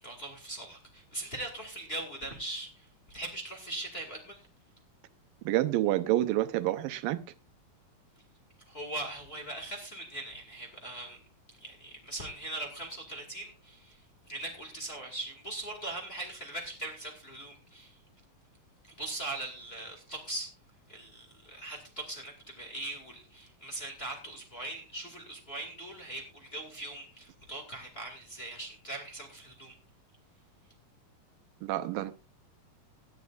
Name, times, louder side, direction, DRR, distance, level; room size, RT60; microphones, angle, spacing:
voice 1, 0.0-4.5 8.7-11.2 11.6-14.0 14.3-18.0 18.8-20.5 20.9-29.7, right 2 dB, 20° left, 1.9 m, -40 dB
voice 2, 5.5-7.2 31.6-32.1, right 15 dB, 85° right, 2.5 m, -28 dB
18.0 x 10.5 x 2.5 m
omnidirectional pair, 4.0 m